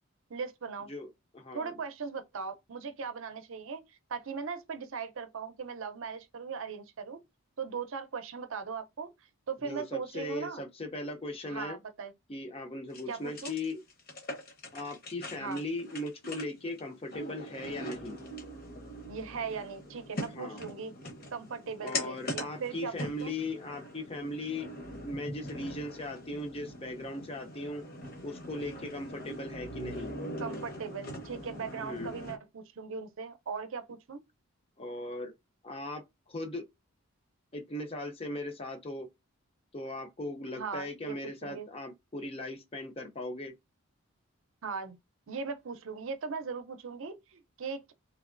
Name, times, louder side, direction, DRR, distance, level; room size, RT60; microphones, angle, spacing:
voice 1, 0.3-0.9 1.5-7.2 7.6-9.1 9.5-10.6 11.5-12.1 13.1-13.5 15.4-15.6 19.1-20.9 21.3-23.3 30.4-34.2 40.5-41.2 41.4-41.7 44.6-45.0 45.3-47.9, right 5 dB, 65° right, 0.5 m, -39 dB
voice 2, 1.3-1.8 9.6-11.8 12.3-13.8 14.7-18.2 20.3-20.6 21.8-24.7 25.0-27.9 28.2-30.1 31.8-32.1 34.8-35.3 35.6-36.7 37.5-39.1 39.7-43.5, left 1 dB, 25° left, 0.5 m, -38 dB
sound 1, 12.9-32.4, left 1 dB, 45° left, 0.9 m, -42 dB
3.3 x 3.0 x 2.4 m
head